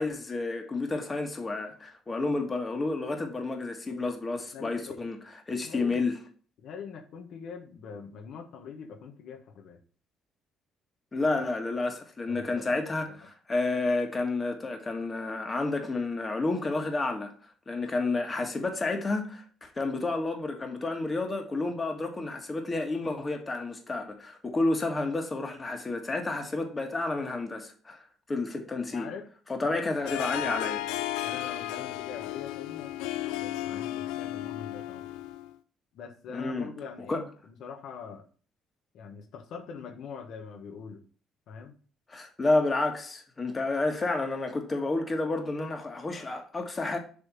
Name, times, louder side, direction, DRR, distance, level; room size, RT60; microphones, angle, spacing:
voice 1, 0.0-5.2 5.5-6.2 11.1-17.3 17.7-28.0 28.3-29.1 29.5-30.8 36.3-36.7 37.1-37.2 42.1-47.0, left 2 dB, 25° left, 1.7 m, -30 dB
voice 2, 4.5-5.0 5.6-6.1 6.6-9.8 11.2-11.4 12.3-12.7 13.0-13.3 28.9-29.3 29.6-29.9 31.2-32.9 33.3-35.0 35.9-38.2 38.9-41.0 41.5-41.8, left 6 dB, 70° left, 1.1 m, -43 dB
Harp, 30.1-35.5, left 14 dB, 90° left, 0.4 m, -34 dB
6.9 x 3.4 x 5.7 m
supercardioid pair, 75°, 0 cm